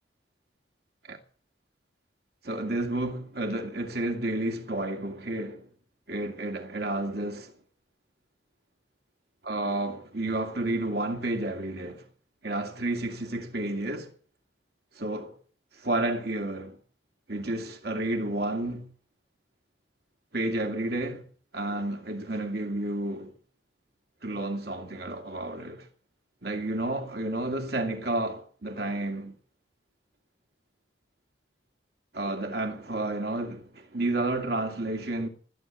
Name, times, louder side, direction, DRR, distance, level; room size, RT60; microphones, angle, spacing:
voice 1, 2.4-5.7 6.1-7.5 9.4-12.0 12.4-14.1 15.0-15.4 15.8-16.8 17.3-18.9 20.3-21.3 21.5-23.3 24.2-25.9 26.4-29.4 32.1-35.3, right 2 dB, 60° right, 2.4 m, -31 dB
19.5 x 9.2 x 7.4 m
head